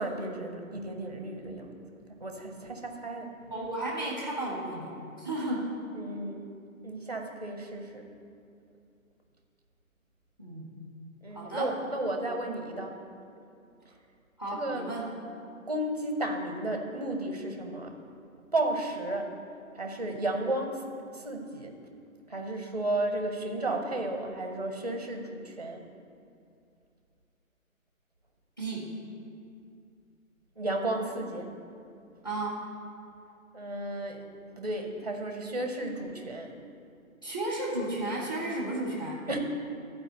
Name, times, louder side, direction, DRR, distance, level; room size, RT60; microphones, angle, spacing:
voice 1, 0.0-1.8 2.2-3.3 5.9-6.5 6.8-8.1 11.2-13.0 14.5-14.9 15.7-17.9 18.5-19.3 19.8-20.9 21.1-21.7 22.3-25.8 30.6-31.5 33.5-34.3 34.6-36.5 39.3-39.4, right 1 dB, 30° right, 3 dB, 0.6 m, -33 dB
voice 2, 3.5-4.9 5.2-5.7 10.4-10.7 11.3-11.8 14.4-15.1 28.6-28.9 32.2-32.6 37.2-39.2, right 1 dB, 15° left, -4 dB, 0.9 m, -33 dB
11.0 x 4.8 x 7.4 m, 2.4 s
hypercardioid pair, 180°, 42 cm